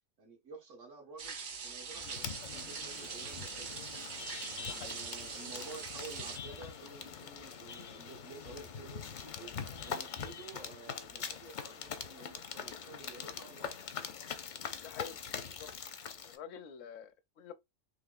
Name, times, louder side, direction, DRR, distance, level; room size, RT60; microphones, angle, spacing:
voice 1, 0.2-1.4 1.6-3.8 4.5-13.8, right 3 dB, 75° right, 1.8 m, -51 dB
sound 1, 1.2-6.4, right 5 dB, 50° right, 0.7 m, -43 dB
sound 2, 1.9-16.4, left 7 dB, 55° left, 0.5 m, -43 dB
voice 2, 4.7-5.0 14.8-15.7 16.2-17.5, left 8 dB, 80° left, 1.0 m, -48 dB
4.2 x 3.1 x 2.4 m
omnidirectional pair, 1.3 m